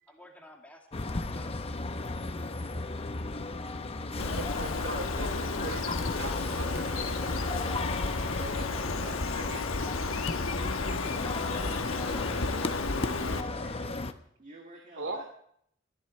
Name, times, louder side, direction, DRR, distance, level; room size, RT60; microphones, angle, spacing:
voice 1, 0.1-0.9 1.1-1.5, left 1 dB, 10° left, 1 dB, 2.2 m, -54 dB
sound 1, 0.9-14.1, left 3 dB, 30° left, 0.7 m, -35 dB
Bird, 4.2-13.4, left 3 dB, 90° left, 1.1 m, -33 dB
voice 2, 4.3-7.1 7.8-9.7 15.0-15.2, right 2 dB, 65° right, 5 dB, 2.3 m, -41 dB
voice 3, 13.2-14.0 14.4-15.2, right 2 dB, 40° right, 0 dB, 1.9 m, -49 dB
23.5 x 11.0 x 3.2 m, 0.66 s
head